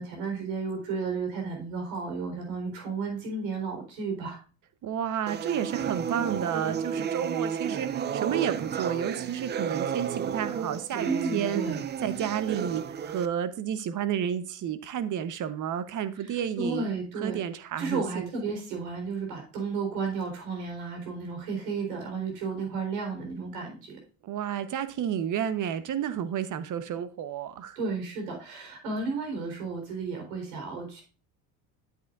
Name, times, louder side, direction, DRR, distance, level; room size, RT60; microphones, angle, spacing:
voice 1, 0.0-4.4 11.0-11.8 16.2-17.4 17.8-24.0 27.8-31.0, right 4 dB, 80° right, 4.1 m, -33 dB
voice 2, 4.8-11.6 12.0-18.3 24.2-27.8, right 9 dB, 40° right, 1.0 m, -31 dB
sound 1, 5.3-13.3, right 7 dB, 25° right, 0.5 m, -32 dB
9.7 x 8.2 x 2.5 m
supercardioid pair, 100°, 47 cm